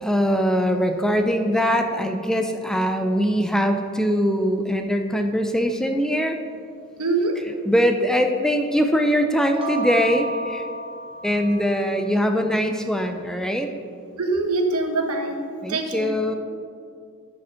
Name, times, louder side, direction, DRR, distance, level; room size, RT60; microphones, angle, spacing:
voice 1, 0.0-6.4 7.4-10.6 11.2-13.7 15.6-16.3, equal, 5° left, 6 dB, 0.4 m, -22 dB
voice 2, 7.0-7.4 14.2-15.4 15.7-16.1, right 3 dB, 80° right, 3 dB, 1.1 m, -23 dB
sound 1, 9.4-12.1, right 1 dB, 25° right, 0.9 m, -32 dB
10.5 x 4.9 x 5.7 m, 2.3 s
head